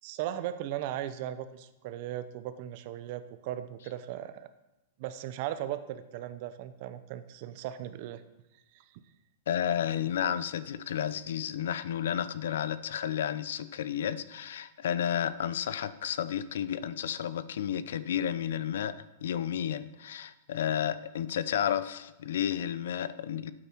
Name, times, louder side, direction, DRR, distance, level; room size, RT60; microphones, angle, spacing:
voice 1, 0.0-4.5 5.0-8.2 8.7-9.0, right 12 dB, 45° right, 11 dB, 0.8 m, -37 dB
voice 2, 9.5-23.5, left 9 dB, 75° left, 15 dB, 0.6 m, -32 dB
12.5 x 8.8 x 4.6 m, 1.0 s
supercardioid pair, 160°, 0 cm